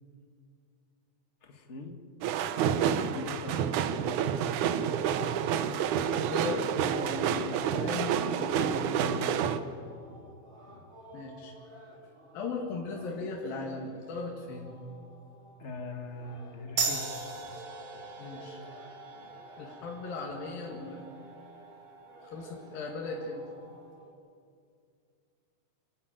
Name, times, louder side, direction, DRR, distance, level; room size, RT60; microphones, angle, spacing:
voice 1, 1.4-2.0 2.3-2.4 2.9-4.3 4.5-4.7 8.9-9.8 10.1-10.3 10.7-10.9 15.6-17.5 17.9-18.1 19.1-19.4, left 2 dB, 50° left, 4 dB, 0.8 m, -42 dB
sound 1, 2.2-9.6, right 8 dB, 75° right, 2.0 m, -29 dB
voice 2, 5.6-9.0 11.1-11.5 12.3-14.7 18.2-18.6 19.6-21.0 22.2-23.5, left 3 dB, 80° left, -1 dB, 3.8 m, -38 dB
sound 2, 8.0-24.1, right 1 dB, 20° right, 3.1 m, -53 dB
sound 3, 16.8-23.9, right 4 dB, 50° right, 2.8 m, -39 dB
27.5 x 13.0 x 9.0 m, 2.3 s
omnidirectional pair, 4.0 m